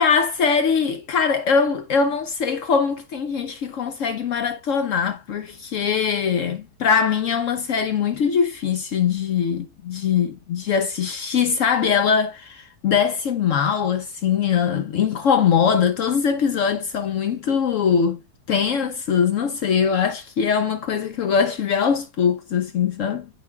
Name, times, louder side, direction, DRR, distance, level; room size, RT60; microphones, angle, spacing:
voice 1, 0.0-18.2 18.5-23.3, left 6 dB, 65° left, 0.8 m, -22 dB
12.0 x 4.0 x 2.2 m
omnidirectional pair, 1.8 m